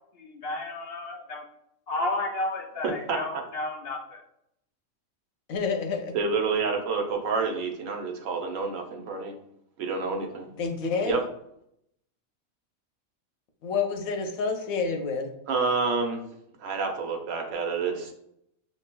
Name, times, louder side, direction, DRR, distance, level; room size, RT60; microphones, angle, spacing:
voice 1, 0.1-1.4 1.9-4.2, left 2 dB, 65° left, 1 dB, 0.6 m, -32 dB
voice 2, 5.5-6.1 10.6-11.2 13.6-15.3, left 5 dB, 85° left, 4 dB, 1.1 m, -28 dB
voice 3, 6.1-9.3 9.8-10.5 11.1-11.2 15.5-16.2 16.6-18.1, right 4 dB, 70° right, 3 dB, 1.1 m, -28 dB
5.9 x 3.2 x 2.2 m, 0.75 s
omnidirectional pair, 1.4 m